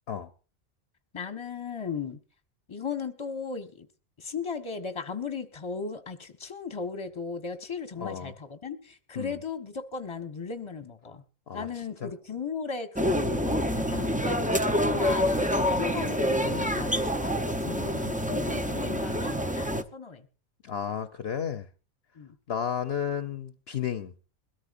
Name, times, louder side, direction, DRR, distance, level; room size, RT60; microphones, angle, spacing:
voice 1, 1.1-2.2 2.7-3.9 4.2-11.2 11.5-20.3 22.1-22.4, left 5 dB, 25° left, 1.2 m, -36 dB
voice 2, 8.0-8.3 9.2-9.4 11.5-11.7 12.0-12.1 13.5-13.9 20.6-21.7 22.5-24.1, left 8 dB, 60° left, 1.0 m, -33 dB
sound 1, 13.0-19.8, equal, 10° right, 0.7 m, -27 dB
22.0 x 13.5 x 2.6 m
omnidirectional pair, 1.2 m